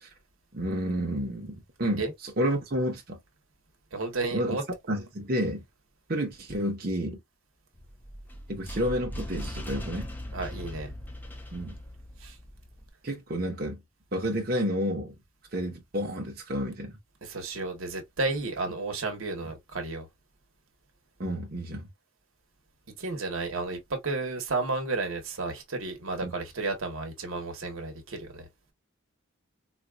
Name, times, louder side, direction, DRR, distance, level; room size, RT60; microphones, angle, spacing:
voice 1, 0.5-3.2 4.3-4.6 4.9-5.6 6.1-7.2 8.5-10.1 11.5-11.7 13.0-13.8 14.1-15.1 15.5-17.0 19.4-19.5 21.2-21.9 26.2-26.3, equal, 45° right, 0.8 m, -30 dB
voice 2, 3.9-4.6 10.3-10.9 12.2-12.4 17.2-20.1 23.0-28.5, right 3 dB, 75° right, 1.0 m, -32 dB
sound 1, 7.7-12.9, equal, 10° left, 0.4 m, -39 dB
4.1 x 2.3 x 2.3 m
head